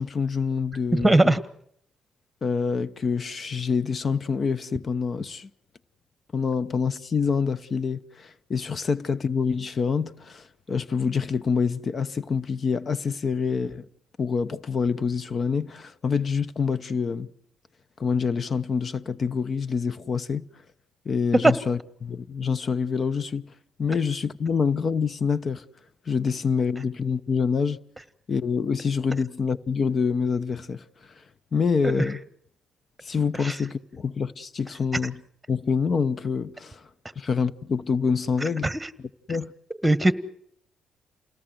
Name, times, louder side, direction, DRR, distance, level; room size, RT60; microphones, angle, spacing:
voice 1, 0.0-1.4 2.4-5.5 6.3-13.9 14.2-17.3 18.0-20.4 21.0-23.4 23.8-25.6 26.1-27.8 28.3-30.8 31.5-32.2 33.0-35.2 35.5-36.9 37.2-38.7 39.3-39.5, left 5 dB, 45° left, 0.9 m, -26 dB
voice 2, 0.9-1.4 21.4-21.5 31.8-32.0 33.4-33.6 38.6-38.8 39.8-40.1, right 2 dB, 10° right, 1.6 m, -19 dB
29.0 x 18.5 x 7.9 m
cardioid pair, 90°, 0 cm